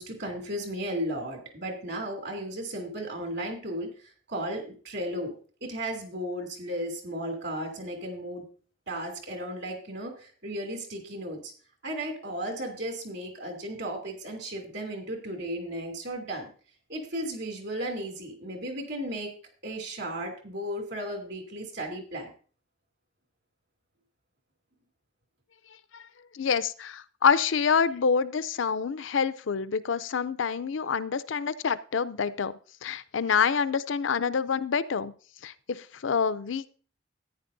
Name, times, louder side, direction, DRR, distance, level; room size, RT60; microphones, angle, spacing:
voice 1, 0.0-5.3 5.6-8.5 8.9-11.5 11.8-16.5 16.9-19.3 19.6-22.3, right 1 dB, 60° right, 3 dB, 2.8 m, -35 dB
voice 2, 26.3-32.5 32.8-35.1 35.4-36.7, left 6 dB, 85° left, 15 dB, 0.5 m, -27 dB
14.0 x 9.9 x 2.7 m, 0.41 s
head